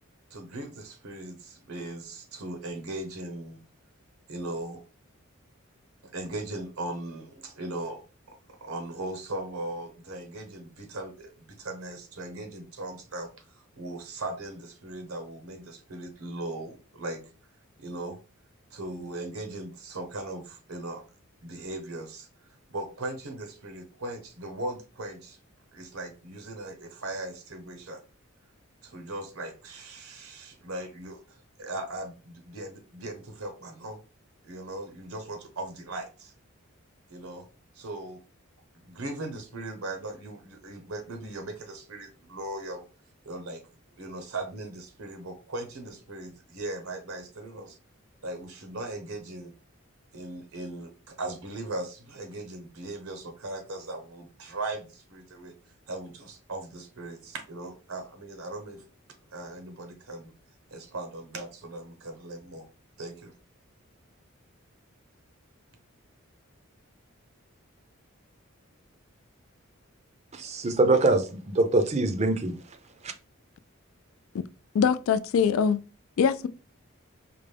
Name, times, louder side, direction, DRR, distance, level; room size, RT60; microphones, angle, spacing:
voice 1, 0.3-3.6 4.3-4.8 6.1-8.0 8.5-17.2 17.8-18.2 18.7-21.0 21.4-22.3 22.7-25.4 25.7-28.0 28.8-34.0 34.4-36.3 37.1-37.4 37.7-38.2 38.7-42.9 43.2-43.6 44.0-47.8 48.2-49.5 50.1-55.5 55.9-58.8 59.3-60.3 60.7-62.6 63.0-63.3, right 2 dB, 85° right, 1.0 m, -38 dB
voice 2, 70.3-72.8 73.0-73.1, right 2 dB, 30° right, 0.5 m, -24 dB
voice 3, 74.7-75.8 76.2-76.5, left 6 dB, 75° left, 0.3 m, -23 dB
4.9 x 2.2 x 3.3 m
head